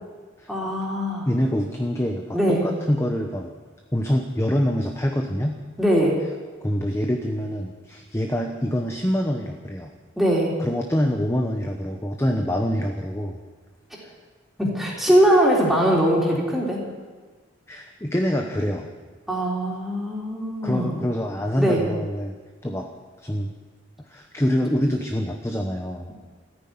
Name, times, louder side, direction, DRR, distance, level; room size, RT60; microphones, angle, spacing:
voice 1, 0.5-1.3 2.3-2.6 5.8-6.2 10.2-10.5 14.6-16.8 19.3-21.0 21.6-21.8, right 1 dB, ahead, -4 dB, 3.7 m, -21 dB
voice 2, 1.3-3.5 3.9-5.6 6.6-9.9 10.6-13.4 17.7-18.9 20.6-22.3 22.6-22.9 23.2-23.5 24.1-26.1, equal, 15° left, 3 dB, 0.9 m, -25 dB
14.5 x 9.8 x 9.5 m, 1.4 s
head